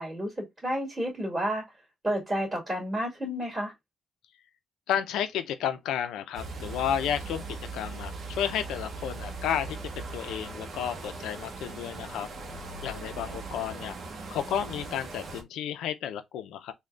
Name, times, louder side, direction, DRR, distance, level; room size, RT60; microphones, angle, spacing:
voice 1, 0.0-1.6 2.0-3.7, equal, 15° right, 2.2 m, -31 dB
voice 2, 4.9-12.3 12.8-13.9 14.3-16.7, left 9 dB, 85° left, 0.6 m, -32 dB
sound 1, 6.3-15.4, right 3 dB, 50° right, 0.8 m, -39 dB
3.8 x 2.3 x 3.3 m
cardioid pair, 90°, 0 cm